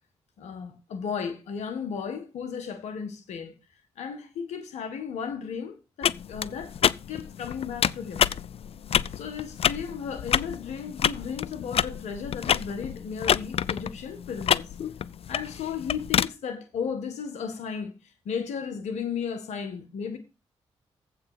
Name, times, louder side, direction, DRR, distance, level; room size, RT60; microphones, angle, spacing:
voice 1, 0.4-3.5 4.0-6.8 7.1-8.3 9.1-14.7 15.3-18.0 18.2-20.2, left 6 dB, 85° left, 1.7 m, -34 dB
sound 1, 6.0-16.3, left 8 dB, 60° left, 0.4 m, -28 dB
7.9 x 5.8 x 7.3 m
supercardioid pair, 50°, 11 cm